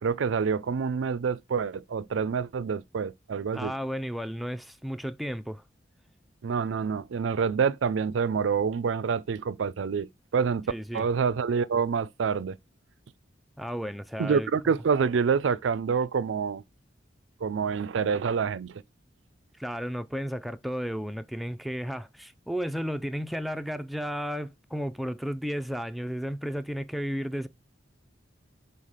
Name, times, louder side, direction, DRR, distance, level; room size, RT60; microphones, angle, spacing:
voice 1, 0.0-3.7 6.4-10.7 10.9-12.6 14.2-16.6 17.4-18.8, right 6 dB, 75° right, 0.4 m, -27 dB
voice 2, 3.5-5.6 10.7-11.1 13.6-14.5 19.6-27.5, equal, ahead, 0.4 m, -33 dB
5.7 x 4.2 x 4.8 m
head